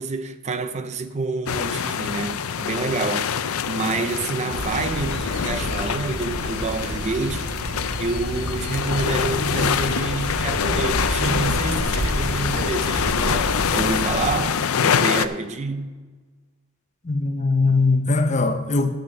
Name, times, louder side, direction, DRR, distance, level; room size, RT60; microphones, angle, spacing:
voice 1, 0.0-7.5 8.0-15.9, right 3 dB, 30° right, 0.5 m, -28 dB
sound 1, 1.5-15.3, left 7 dB, 80° left, 0.5 m, -25 dB
sound 2, 4.5-14.4, right 1 dB, 50° right, 1.0 m, -30 dB
voice 2, 17.0-18.9, left 3 dB, 35° left, 0.8 m, -20 dB
12.0 x 5.9 x 6.6 m
head